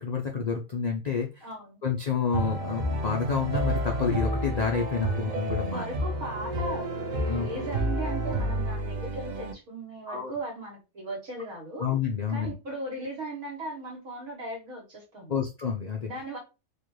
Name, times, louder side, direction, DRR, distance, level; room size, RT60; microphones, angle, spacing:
voice 1, 0.0-1.5 1.8-5.8 7.2-7.5 10.1-10.3 11.8-12.5 15.3-16.1, left 6 dB, 65° left, 1 dB, 0.4 m, -29 dB
voice 2, 1.4-1.8 5.0-5.3 5.6-6.9 7.2-11.9 12.3-15.4 16.1-16.4, right 1 dB, 75° right, -1 dB, 1.6 m, -38 dB
sound 1, 2.3-9.5, right 1 dB, 50° right, 0.5 m, -30 dB
4.3 x 2.4 x 3.0 m, 0.28 s
omnidirectional pair, 1.5 m